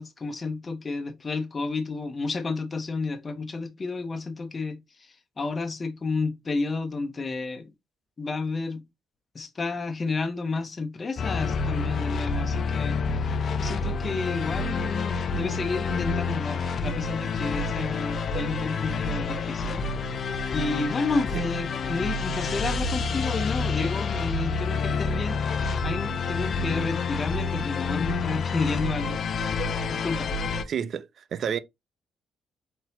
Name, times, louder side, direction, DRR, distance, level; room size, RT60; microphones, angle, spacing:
voice 1, 0.0-7.7 8.2-8.8 9.3-13.0 13.6-19.8 20.5-29.6 29.9-30.3, left 3 dB, 35° left, 1.2 m, -31 dB
sound 1, 11.2-30.6, left 4 dB, 55° left, 0.7 m, -28 dB
voice 2, 30.7-31.6, right 8 dB, 60° right, 0.5 m, -30 dB
4.4 x 4.0 x 2.8 m
cardioid pair, 90°, 0 cm